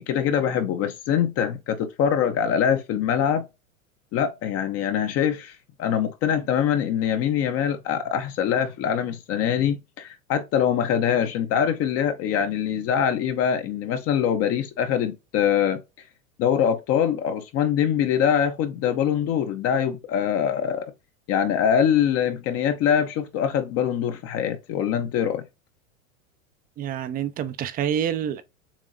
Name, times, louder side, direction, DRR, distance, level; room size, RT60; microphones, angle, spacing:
voice 1, 0.0-3.4 4.1-15.8 16.4-20.9 21.3-25.4, left 8 dB, 35° left, 0.7 m, -23 dB
voice 2, 26.8-28.4, right 9 dB, 20° right, 0.4 m, -27 dB
7.2 x 2.6 x 2.6 m
hypercardioid pair, 115°, 42 cm